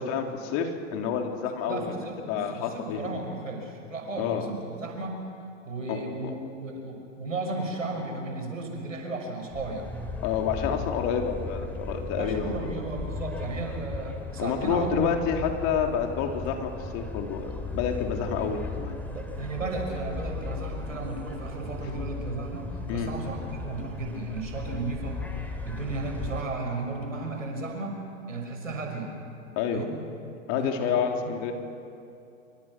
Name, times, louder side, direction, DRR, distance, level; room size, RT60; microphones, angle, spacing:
voice 1, 0.0-1.9 2.3-3.0 4.2-4.5 5.9-6.0 10.2-12.7 14.4-19.0 22.9-23.1 29.5-29.8 30.5-31.5, left 7 dB, 45° left, 3 dB, 3.5 m, -29 dB
voice 2, 1.7-5.2 5.6-9.9 12.1-15.1 19.1-25.2 25.6-28.0 28.3-29.1 29.7-30.0 30.5-31.4, right 3 dB, 90° right, 2 dB, 5.9 m, -34 dB
sound 1, 9.5-26.4, left 3 dB, 5° left, 3.0 m, -36 dB
27.0 x 25.0 x 6.2 m, 2.5 s
hypercardioid pair, 100°, 38 cm